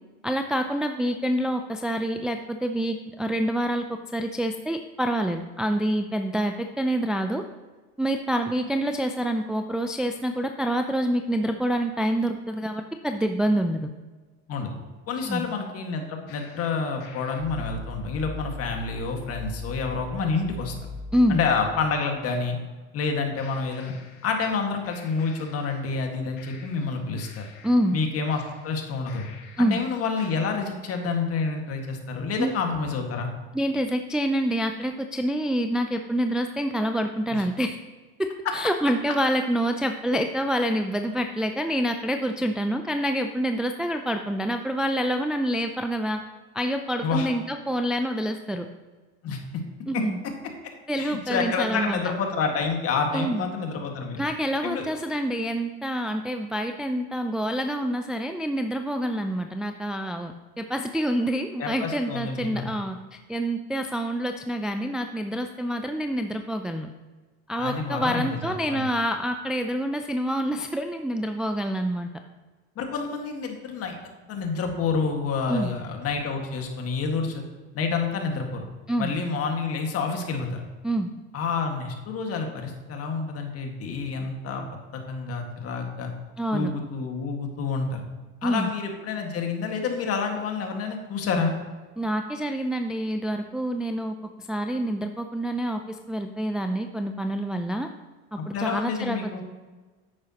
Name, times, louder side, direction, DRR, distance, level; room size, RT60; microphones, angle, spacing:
voice 1, 0.2-7.4 8.0-13.9 15.2-15.5 21.1-21.4 27.6-28.0 29.6-29.8 32.4-32.5 33.5-37.8 38.2-46.2 46.5-48.7 49.9-50.2 50.9-52.0 53.1-53.4 54.2-63.0 63.3-66.9 67.5-72.1 75.5-75.7 78.9-79.2 80.8-81.1 86.4-86.7 88.4-88.7 92.0-97.9 98.3-99.4, equal, ahead, 6 dB, 0.3 m, -27 dB
voice 2, 15.1-20.7 21.3-22.6 22.9-23.9 24.2-27.5 27.9-29.2 29.6-33.3 37.3-37.4 47.0-47.3 49.2-49.6 49.9-50.0 51.0-54.2 54.6-54.8 61.6-62.7 67.6-68.9 72.7-77.4 77.7-78.6 79.0-80.6 81.3-86.1 86.5-88.0 88.4-91.5 98.4-99.4, left 4 dB, 45° left, 3 dB, 1.8 m, -28 dB
sound 1, 16.3-22.4 23.4-24.6 24.8-26.1 26.4-29.8 30.2-30.8, left 1 dB, 70° left, 1.7 m, -42 dB
10.0 x 8.5 x 2.9 m, 1.3 s
supercardioid pair, 110°, 33 cm